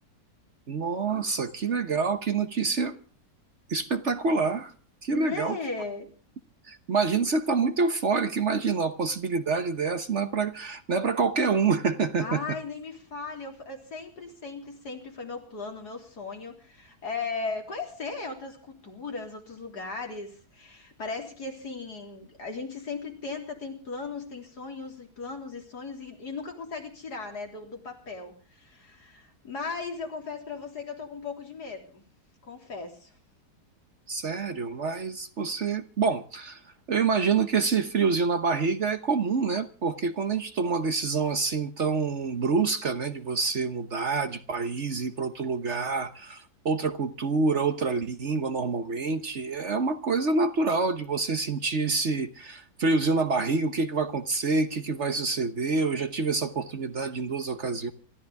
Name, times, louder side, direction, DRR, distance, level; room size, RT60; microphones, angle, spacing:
voice 1, 0.7-2.9 3.7-4.7 5.0-5.6 6.7-12.4 34.1-36.6 36.9-57.9, right 4 dB, 50° right, 1.3 m, -27 dB
voice 2, 5.1-6.1 12.2-32.0 32.4-33.1, left 4 dB, 70° left, 4.0 m, -37 dB
27.0 x 13.5 x 3.5 m
omnidirectional pair, 1.8 m